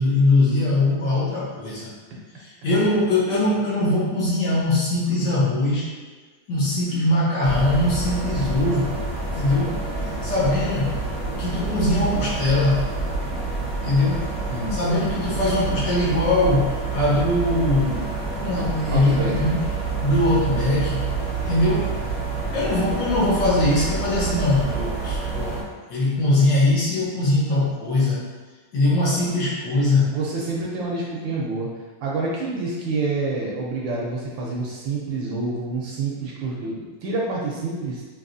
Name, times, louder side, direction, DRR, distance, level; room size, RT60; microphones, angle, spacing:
voice 1, 0.0-1.9 2.4-5.9 6.5-9.0 9.3-9.8 10.2-11.0 11.4-12.9 13.8-14.3 14.7-19.7 20.0-21.9 22.5-25.6 25.9-28.2 28.7-30.1, left 2 dB, 60° left, -7 dB, 1.4 m, -21 dB
sound 1, 7.4-25.6, right 4 dB, 45° left, 1.5 m, -28 dB
voice 2, 18.9-19.5 30.1-31.7 32.0-38.0, right 3 dB, 70° right, -3 dB, 1.2 m, -27 dB
4.7 x 2.9 x 2.6 m, 1.3 s
omnidirectional pair, 2.3 m